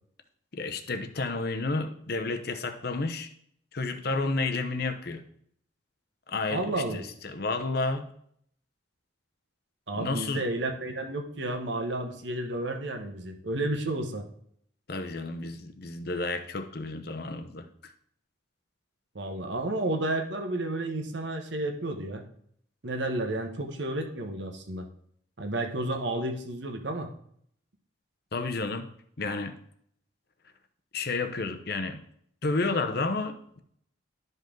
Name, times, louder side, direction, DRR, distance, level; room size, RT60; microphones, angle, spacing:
voice 1, 0.5-3.3 3.7-5.2 6.3-8.1 9.9-10.5 14.9-17.7 28.3-28.9 29.2-29.6 30.9-32.0 32.4-33.6, left 3 dB, 50° left, 8 dB, 0.8 m, -31 dB
voice 2, 6.5-7.0 9.9-14.2 19.1-22.2 22.8-24.9 25.4-27.1, right 2 dB, 65° right, 4 dB, 1.2 m, -31 dB
12.0 x 5.4 x 3.8 m, 0.66 s
head